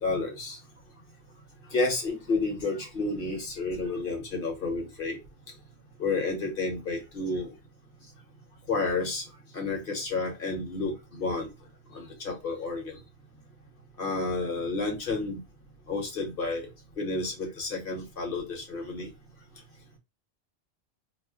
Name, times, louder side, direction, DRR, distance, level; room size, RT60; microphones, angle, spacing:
voice 1, 0.0-0.6 1.7-5.2 6.0-7.5 8.7-9.2 9.5-11.5 11.9-13.0 14.0-15.4 15.9-16.7 17.0-19.1, left 3 dB, 60° left, 2 dB, 1.1 m, -30 dB
2.4 x 2.1 x 3.6 m, 0.25 s
omnidirectional pair, 1.1 m